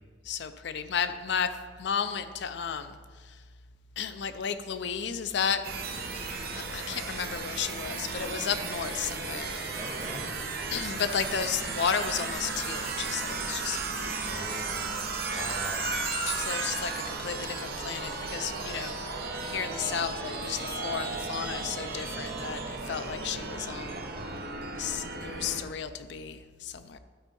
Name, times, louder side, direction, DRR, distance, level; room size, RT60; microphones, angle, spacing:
voice 1, 0.2-3.0 3.2-3.4 4.0-5.6 6.5-9.5 10.7-14.4 15.3-15.6 16.3-19.0 19.3-24.0 24.8-27.0, left 7 dB, 65° left, 11 dB, 0.5 m, -33 dB
sound 1, 5.6-25.6, right 3 dB, 55° right, 1.0 m, -35 dB
voice 2, 6.2-6.5 6.9-7.0 9.1-10.2 14.2-15.0 15.3-15.9 23.9-24.5, right 1 dB, 30° right, 0 dB, 1.3 m, -44 dB
12.0 x 4.5 x 5.3 m, 1.5 s
head